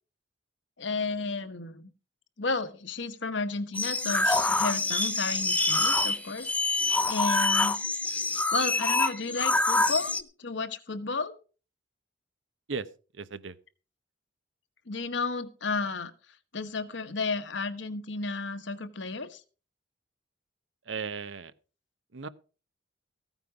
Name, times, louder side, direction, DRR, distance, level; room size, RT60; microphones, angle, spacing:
voice 1, 0.8-1.9 2.4-7.8 8.5-11.4 14.9-16.1 16.5-19.4, left 3 dB, 70° left, 10 dB, 1.2 m, -33 dB
sound 1, 3.7-10.2, left 2 dB, 10° left, 0.6 m, -26 dB
voice 2, 13.1-13.5 20.9-21.5 22.1-22.3, right 5 dB, 75° right, 14 dB, 0.9 m, -36 dB
15.0 x 9.3 x 4.7 m, 0.36 s
head